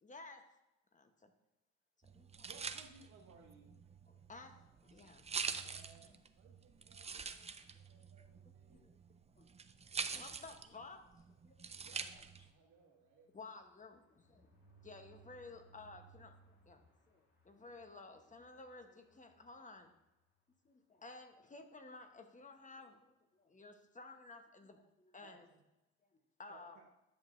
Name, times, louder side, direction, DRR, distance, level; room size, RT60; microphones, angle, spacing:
voice 1, 0.0-0.4 0.9-1.3 2.1-2.5 4.1-4.6 4.8-5.2 5.6-5.7 8.7-8.8 9.4-9.5 10.1-11.7 13.3-14.5 14.8-19.9 20.6-25.5 26.4-26.8, left 3 dB, 25° left, 6 dB, 1.0 m, -54 dB
sound 1, 2.0-12.5, right 5 dB, 20° right, 0.4 m, -46 dB
voice 2, 2.4-3.9 25.2-25.4 26.5-26.9, right 4 dB, 65° right, -1 dB, 1.0 m, -59 dB
voice 3, 5.5-8.9 11.8-13.3, right 4 dB, 85° right, -2 dB, 1.9 m, -67 dB
sound 2, 12.3-20.5 21.0-21.1 21.4-21.5 21.8-22.0, right 4 dB, 50° left, 2.6 m, -67 dB
10.5 x 6.8 x 2.5 m, 0.95 s
cardioid pair, 90°, 30 cm